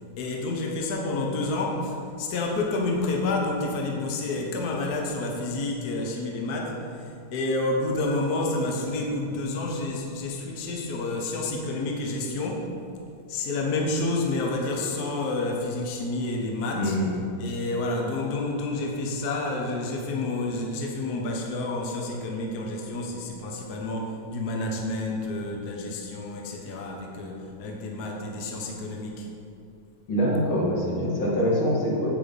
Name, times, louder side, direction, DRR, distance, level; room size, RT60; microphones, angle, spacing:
voice 1, 0.2-12.8 13.3-17.0 17.4-29.3, left 2 dB, 55° left, 0 dB, 1.5 m, -29 dB
voice 2, 16.7-17.2 30.1-32.1, equal, 85° left, -4 dB, 2.9 m, -24 dB
8.8 x 8.3 x 5.3 m, 2.5 s
omnidirectional pair, 2.2 m